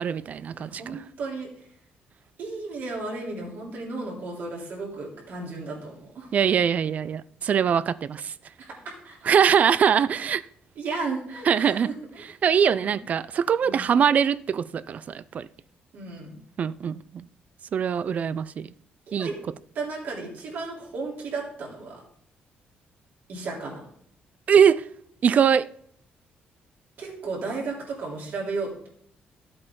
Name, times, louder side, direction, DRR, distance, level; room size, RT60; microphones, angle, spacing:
voice 1, 0.0-1.0 6.3-8.3 9.2-10.4 11.5-11.9 12.4-15.5 16.6-17.3 17.7-18.7 19.1-19.3 24.5-24.9 25.2-25.7, right 7 dB, 45° right, 0.4 m, -22 dB
voice 2, 0.5-1.5 2.4-6.3 8.6-9.2 10.7-11.9 12.2-12.3 12.6-12.8 13.6-13.8 15.9-16.4 19.1-19.3 19.7-22.0 23.3-23.8 27.0-28.9, right 3 dB, 65° right, 3.4 m, -34 dB
13.0 x 7.8 x 3.8 m
cardioid pair, 140°, 4 cm